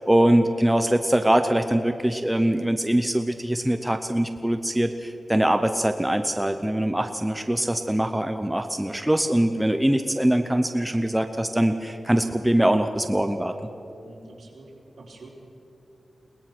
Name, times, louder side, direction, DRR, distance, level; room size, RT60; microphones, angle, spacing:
voice 1, 0.0-13.5, right 1 dB, 10° right, 7 dB, 0.8 m, -23 dB
voice 2, 14.0-14.7 15.0-15.3, right 2 dB, 65° right, -2 dB, 4.1 m, -46 dB
22.5 x 19.0 x 6.1 m, 2.9 s
wide cardioid pair, 110°, 0 cm